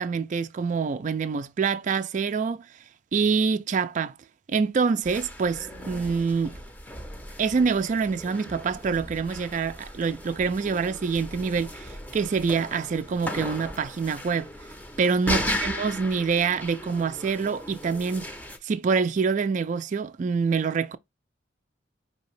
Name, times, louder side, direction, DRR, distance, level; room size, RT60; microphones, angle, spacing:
voice 1, 0.0-2.7 3.1-4.1 4.5-6.6 7.4-14.5 15.0-18.3 18.6-21.0, right 5 dB, 40° right, 0.3 m, -26 dB
sound 1, 5.0-18.6, left 1 dB, 10° left, 0.6 m, -36 dB
5.2 x 2.8 x 3.1 m
head